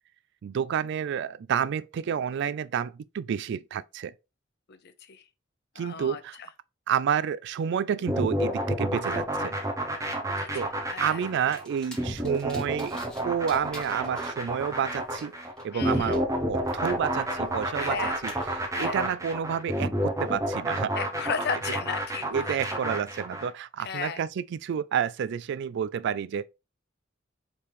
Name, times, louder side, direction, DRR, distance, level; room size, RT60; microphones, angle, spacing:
voice 1, 0.4-4.1 5.8-6.4 6.9-9.6 10.5-10.7 11.0-15.3 15.6-18.0 18.2-20.9 22.3-26.5, right 8 dB, 60° right, 0.3 m, -30 dB
voice 2, 4.7-5.2 5.8-6.5 10.2-10.6 10.9-11.3 15.7-16.2 17.8-18.2 18.7-19.0 20.9-22.6 23.8-24.2, left 6 dB, 55° left, 0.6 m, -35 dB
sound 1, 8.1-23.5, equal, 15° right, 0.9 m, -30 dB
sound 2, 11.5-13.2 13.5-16.2 16.7-18.5, equal, 5° left, 1.3 m, -48 dB
4.6 x 3.5 x 3.0 m
head